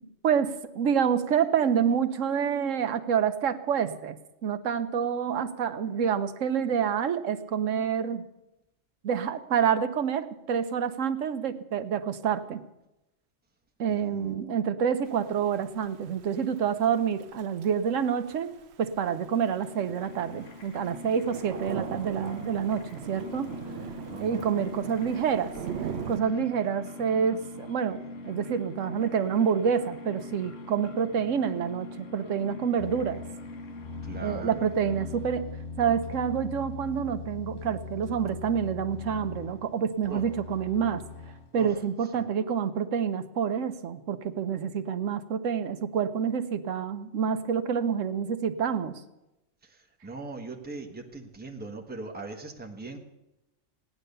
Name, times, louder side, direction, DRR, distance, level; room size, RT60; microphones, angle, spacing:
voice 1, 0.2-4.2 4.4-8.3 9.0-12.6 13.8-23.5 24.2-25.5 26.1-33.2 34.2-35.5 35.8-41.0 41.5-48.9, right 7 dB, 75° right, 10 dB, 1.2 m, -28 dB
voice 2, 13.9-14.3 24.1-24.5 34.1-34.7 40.0-40.2 41.5-41.8 42.1-42.2 49.6-53.0, right 3 dB, 10° right, 1 dB, 1.2 m, -40 dB
Thunder / Rain, 15.0-26.2, right 8 dB, 60° right, 0.9 m, -41 dB
sound 1, 18.9-35.6, left 2 dB, 80° left, 1.5 m, -43 dB
sound 2, 32.8-41.5, left 4 dB, 45° left, 1.4 m, -41 dB
16.0 x 10.5 x 6.7 m, 0.95 s
omnidirectional pair, 1.3 m